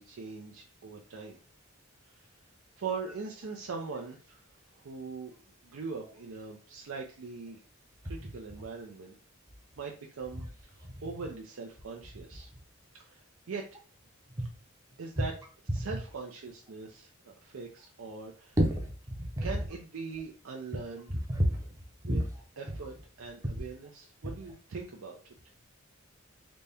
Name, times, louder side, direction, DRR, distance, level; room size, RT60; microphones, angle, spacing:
voice 1, 0.0-1.4 2.8-4.4 4.8-5.3 5.6-7.6 8.0-9.2 9.8-10.4 11.0-12.5 13.0-13.2 13.5-13.6 15.0-15.3 15.7-18.6 19.4-21.1 22.0-22.2 22.6-25.2, right 4 dB, 80° right, 0 dB, 0.5 m, -41 dB
voice 2, 18.6-19.5 21.3-21.6 22.0-22.3, equal, 15° right, 1 dB, 0.6 m, -29 dB
4.0 x 2.2 x 3.4 m, 0.40 s
head